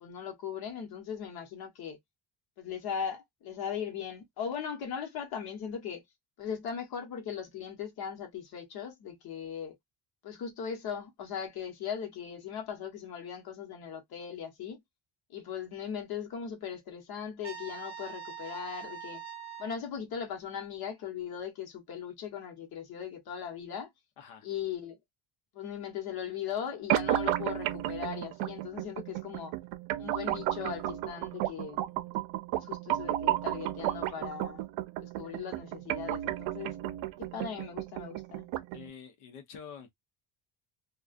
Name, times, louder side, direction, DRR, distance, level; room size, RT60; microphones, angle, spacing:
voice 1, 0.0-2.0 2.6-6.0 6.4-9.7 10.2-14.8 15.3-19.2 19.6-23.9 24.4-25.0 25.5-29.5 30.0-31.9 32.5-34.6 35.0-36.7 37.2-38.5, left 7 dB, 50° left, 1.0 m, -39 dB
Trumpet, 17.4-19.8, right 7 dB, 35° right, 0.7 m, -43 dB
sound 1, 26.9-38.9, right 14 dB, 85° right, 0.6 m, -33 dB
voice 2, 38.7-39.9, left 7 dB, 90° left, 0.9 m, -47 dB
2.4 x 2.3 x 2.4 m
cardioid pair, 160°, 47 cm